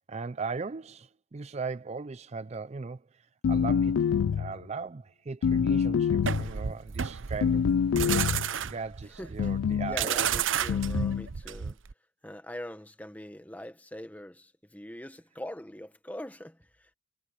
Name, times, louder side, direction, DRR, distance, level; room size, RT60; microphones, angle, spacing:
voice 1, 0.0-7.7 8.6-10.4, right 4 dB, 30° right, 0.4 m, -38 dB
sound 1, 3.4-4.6 5.4-6.5 7.4-8.5 9.4-10.0 10.7-11.3, left 7 dB, 85° left, 0.3 m, -26 dB
sound 2, 6.2-11.9, right 8 dB, 65° right, 0.7 m, -31 dB
voice 2, 9.2-9.5 9.8-11.8 12.2-16.9, left 1 dB, 10° left, 1.4 m, -42 dB
head